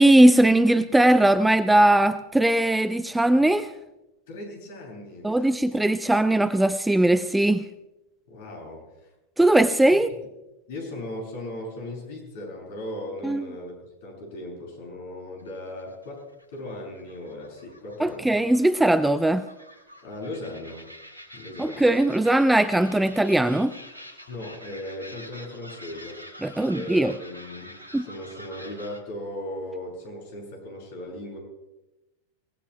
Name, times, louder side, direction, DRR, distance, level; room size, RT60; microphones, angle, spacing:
voice 1, 0.0-3.7 5.2-7.6 9.4-10.1 13.2-13.5 18.0-19.4 21.6-23.7 26.4-27.1 27.9-28.1, right 1 dB, 5° right, 13 dB, 0.5 m, -19 dB
voice 2, 4.3-5.5 8.3-9.1 9.9-10.0 10.7-16.2 16.5-18.4 20.0-20.9 21.3-21.9 24.3-26.2 26.7-31.4, left 1 dB, 55° left, 0 dB, 7.1 m, -37 dB
sound 1, 15.4-29.0, equal, 85° right, 2.1 m, -46 dB
28.0 x 18.0 x 2.2 m, 0.98 s
figure-of-eight pair, 90°, 0 cm